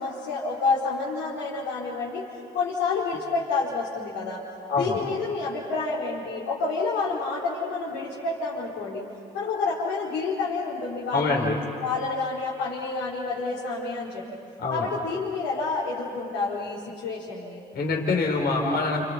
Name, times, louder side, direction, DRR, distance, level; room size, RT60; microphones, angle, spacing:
voice 1, 0.0-2.2 2.5-4.4 4.8-9.0 9.3-11.5 11.8-14.2 14.7-17.6, left 4 dB, 80° left, -8 dB, 4.9 m, -29 dB
voice 2, 11.1-11.6 14.6-14.9 17.7-19.0, left 3 dB, 60° left, 0 dB, 4.8 m, -25 dB
29.5 x 29.5 x 5.9 m, 2.5 s
supercardioid pair, 60°, 19 cm